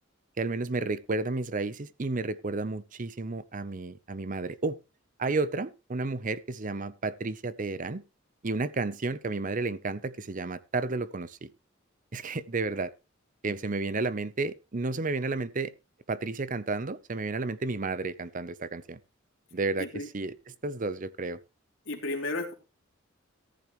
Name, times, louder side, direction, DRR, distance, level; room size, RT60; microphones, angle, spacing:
voice 1, 0.4-4.8 5.2-8.0 8.4-11.5 12.1-12.9 13.4-15.7 16.1-19.0 19.5-21.4, right 3 dB, 40° right, 0.7 m, -32 dB
voice 2, 21.9-22.5, left 2 dB, 85° left, 3.0 m, -33 dB
14.0 x 10.5 x 3.1 m
head